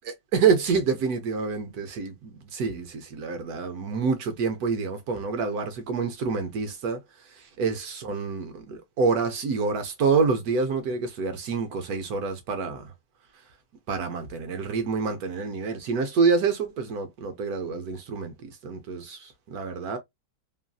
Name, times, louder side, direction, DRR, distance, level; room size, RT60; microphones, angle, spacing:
voice 1, 0.3-7.0 7.6-12.8 13.9-20.0, right 5 dB, 70° right, 1.1 m, -27 dB
3.1 x 2.5 x 2.2 m
omnidirectional pair, 1.8 m